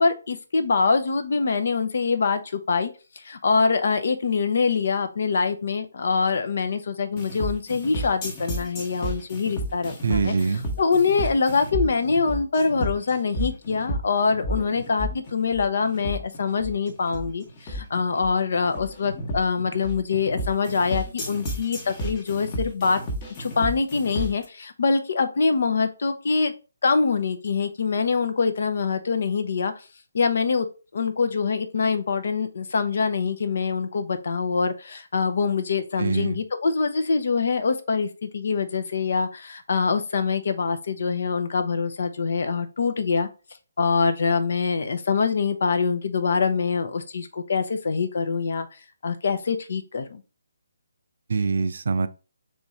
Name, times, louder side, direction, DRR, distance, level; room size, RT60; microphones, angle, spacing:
voice 1, 0.0-2.9 3.2-10.3 10.8-23.0 23.4-26.5 26.8-29.7 30.1-30.7 30.9-43.3 43.8-48.7 49.0-50.2, left 5 dB, 60° left, 0.6 m, -24 dB
sound 1, 7.2-24.5, right 1 dB, 30° left, 1.0 m, -32 dB
voice 2, 10.0-10.6 36.0-36.3 51.3-52.1, right 4 dB, 60° right, 0.4 m, -24 dB
3.5 x 3.2 x 4.0 m
figure-of-eight pair, 145°, 0 cm